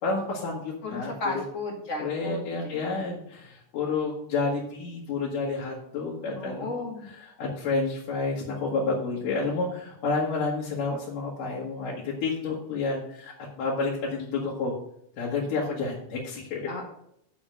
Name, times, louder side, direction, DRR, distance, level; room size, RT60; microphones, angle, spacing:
voice 1, 0.0-1.4 2.0-6.7 7.4-14.7 15.2-16.7, left 3 dB, 90° left, -5 dB, 3.2 m, -30 dB
voice 2, 0.8-3.1 6.3-7.1 16.7-16.8, left 2 dB, 30° left, 0 dB, 1.8 m, -34 dB
7.3 x 6.1 x 7.5 m, 0.73 s
omnidirectional pair, 3.7 m